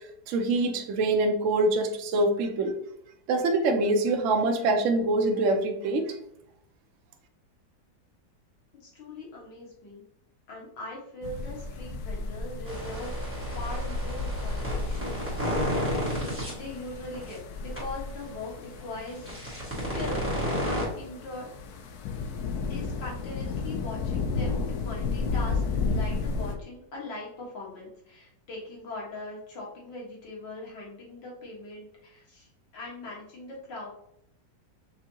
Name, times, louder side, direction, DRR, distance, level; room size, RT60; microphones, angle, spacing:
voice 1, 0.3-2.7 3.3-6.2, right 2 dB, 60° right, 4 dB, 0.8 m, -25 dB
voice 2, 8.8-10.0 10.5-13.2 13.5-20.2 20.6-21.5 22.7-32.5 32.7-33.9, left 2 dB, 85° left, -4 dB, 2.2 m, -41 dB
sound 1, 11.2-26.6, left 4 dB, 70° left, 1.1 m, -33 dB
sound 2, 12.7-16.5 17.1-17.3 17.8-17.9 19.1-20.8, equal, 10° right, 1.6 m, -31 dB
6.1 x 2.8 x 2.8 m, 0.74 s
omnidirectional pair, 1.9 m